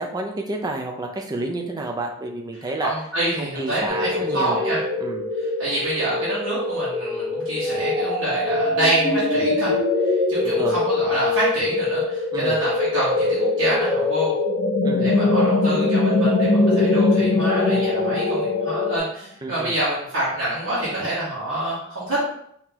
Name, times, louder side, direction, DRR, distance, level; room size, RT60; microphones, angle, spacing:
voice 1, 0.0-2.9 3.4-4.6 5.0-5.3 10.4-10.8 12.3-12.6 14.8-15.2 19.4-19.7, right 2 dB, 20° right, 1 dB, 0.4 m, -30 dB
voice 2, 2.8-4.8 5.4-9.7 10.0-14.3 15.0-22.3, right 1 dB, 65° right, -10 dB, 1.2 m, -27 dB
sound 1, 3.9-19.0, left 2 dB, 40° right, 1.3 m, -24 dB
sound 2, 14.5-19.0, left 3 dB, 65° left, 0.6 m, -21 dB
3.7 x 2.8 x 2.9 m, 0.69 s
head